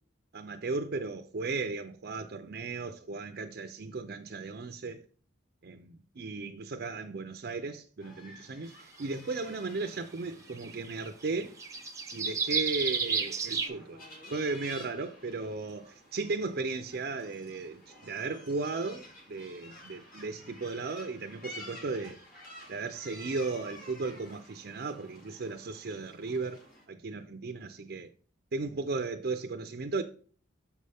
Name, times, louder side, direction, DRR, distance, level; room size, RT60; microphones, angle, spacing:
voice 1, 0.3-5.0 5.6-11.6 12.1-14.0 14.3-22.2 22.7-28.1 28.5-30.0, right 3 dB, 50° right, 0.5 m, -36 dB
sound 1, 8.0-26.9, left 1 dB, 45° left, 2.3 m, -52 dB
sound 2, 9.0-9.1 10.2-10.3 10.5-13.7, right 5 dB, 15° right, 0.7 m, -31 dB
7.0 x 5.5 x 3.4 m
head